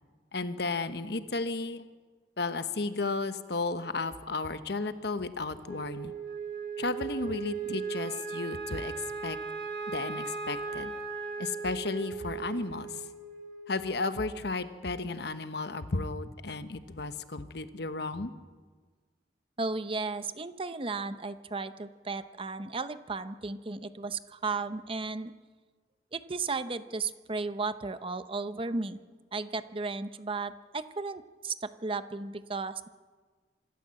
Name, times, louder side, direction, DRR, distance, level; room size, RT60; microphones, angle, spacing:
voice 1, 0.3-1.8 2.4-6.1 6.8-8.9 9.2-9.4 9.9-10.9 11.4-12.9 13.7-18.3, left 3 dB, 65° left, 11 dB, 1.1 m, -33 dB
Wind instrument woodwind instrument, 5.6-14.1, right 5 dB, 55° right, 6.2 m, -38 dB
voice 2, 19.6-25.3 26.1-29.0 29.3-32.9, right 3 dB, 30° right, 12 dB, 0.8 m, -34 dB
26.0 x 13.5 x 7.7 m, 1.4 s
head